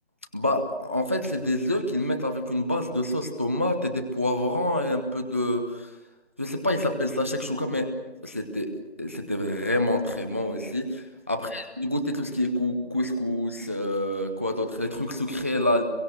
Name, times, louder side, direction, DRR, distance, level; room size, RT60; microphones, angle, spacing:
voice 1, 0.3-5.9 6.4-7.9 8.2-8.7 9.0-15.8, left 1 dB, 10° right, 5 dB, 0.7 m, -27 dB
25.0 x 23.0 x 6.5 m, 1.0 s
figure-of-eight pair, 165°, 33 cm